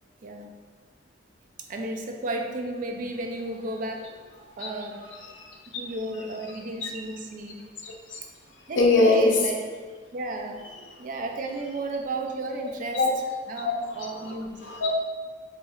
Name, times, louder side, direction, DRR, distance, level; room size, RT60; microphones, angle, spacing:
voice 1, 1.7-5.4 5.7-7.7 8.7-9.5 10.1-10.6 11.0-13.0 13.5-14.6, right 2 dB, 45° right, 2 dB, 0.3 m, -33 dB
voice 2, 5.2-5.8 6.8-6.9 7.8-8.2 8.8-9.3 10.9-11.0 12.9-13.1 13.6-14.3 14.6-14.9, left 3 dB, 80° left, 0 dB, 0.5 m, -24 dB
4.2 x 2.8 x 2.3 m, 1.5 s
head